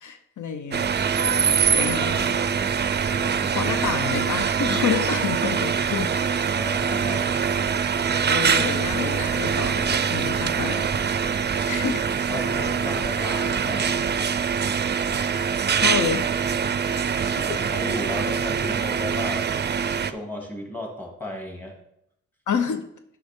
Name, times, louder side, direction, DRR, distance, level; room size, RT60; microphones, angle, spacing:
voice 1, 0.0-0.9 1.2-2.4 3.5-6.2 8.3-10.9 11.3-12.0 15.8-16.3 17.2-17.6 22.5-22.9, left 6 dB, 75° left, 8 dB, 0.7 m, -29 dB
sound 1, 0.7-20.1, right 6 dB, 35° right, 0.4 m, -24 dB
voice 2, 3.1-3.7 6.5-7.3 12.3-14.0 17.4-19.5 20.1-21.8, left 1 dB, 5° left, 0 dB, 2.3 m, -34 dB
10.5 x 5.9 x 3.6 m, 0.76 s
wide cardioid pair, 90°, 31 cm